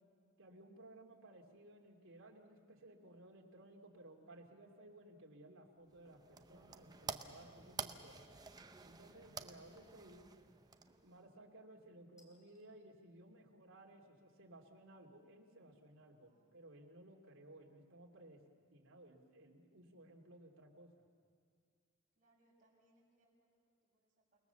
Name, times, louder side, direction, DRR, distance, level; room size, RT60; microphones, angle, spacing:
voice 1, 0.4-8.4 8.8-10.3 11.0-18.4 18.7-20.9, right 1 dB, 70° right, 0 dB, 2.9 m, -59 dB
sound 1, 5.9-11.3, right 4 dB, 20° right, 0.7 m, -50 dB
sound 2, 6.0-6.3 6.8-7.3 9.0-9.5 10.9-11.2 12.2-12.7, left 1 dB, 15° left, 3.3 m, -74 dB
voice 2, 16.2-16.6 22.2-24.5, right 1 dB, 40° right, -4 dB, 7.1 m, -76 dB
29.0 x 20.0 x 7.1 m, 2.1 s
head